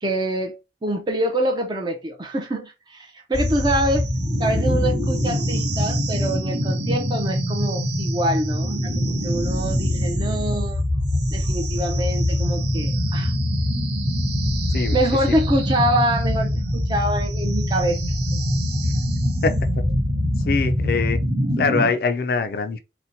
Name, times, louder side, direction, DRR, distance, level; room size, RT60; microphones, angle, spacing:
voice 1, 0.0-4.1 4.4-10.8 11.3-13.3 14.9-18.0, right 1 dB, 25° right, 0.5 m, -25 dB
sound 1, 3.3-21.9, equal, 80° right, 0.9 m, -23 dB
voice 2, 19.4-19.8 20.4-21.2 21.6-22.8, left 4 dB, 55° left, 0.3 m, -23 dB
4.1 x 2.1 x 2.6 m
head